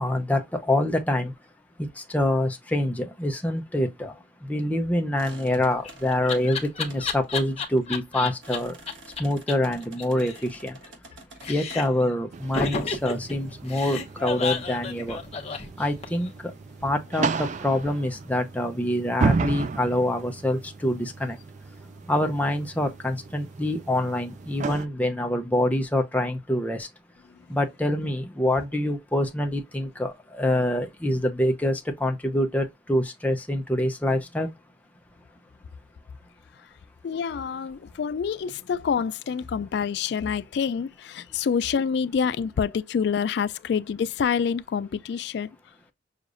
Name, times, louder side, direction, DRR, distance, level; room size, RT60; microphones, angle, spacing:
voice 1, 0.0-1.3 1.8-8.8 9.2-10.8 11.5-15.2 15.8-16.5 16.8-21.4 22.1-26.9 27.5-34.5, left 1 dB, 10° left, 0.6 m, -26 dB
sound 1, 5.2-11.9, right 2 dB, 85° right, 1.4 m, -49 dB
Laughter, 5.5-8.6 8.9-9.0 9.2-9.3 9.5-9.6 9.8-11.1 11.4-12.0 12.5-16.3, left 5 dB, 35° left, 1.0 m, -31 dB
sound 2, 12.3-24.9, right 4 dB, 40° right, 0.4 m, -33 dB
voice 2, 37.0-45.5, left 6 dB, 60° left, 0.3 m, -27 dB
6.5 x 2.4 x 2.5 m
head